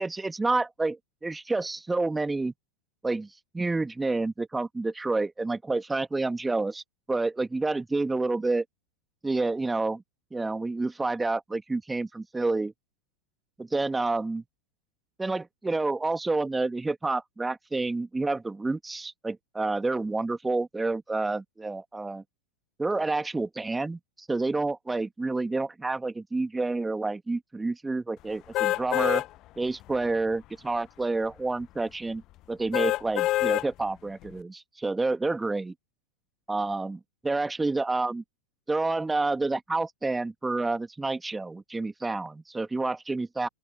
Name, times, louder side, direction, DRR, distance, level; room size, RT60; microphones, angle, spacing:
voice 1, 0.0-2.5 3.0-3.3 3.5-6.8 7.1-8.6 9.2-10.0 10.3-12.7 13.6-14.4 15.2-22.2 22.8-29.2 29.6-32.2 32.5-35.7 36.5-38.2 38.7-43.5, right 3 dB, 10° right, 2.7 m, -29 dB
sound 1, 28.5-29.3 29.8-29.9 32.7-33.7 34.2-34.3, left 16 dB, 35° left, 1.3 m, -25 dB
open air
figure-of-eight pair, 90°, 0 cm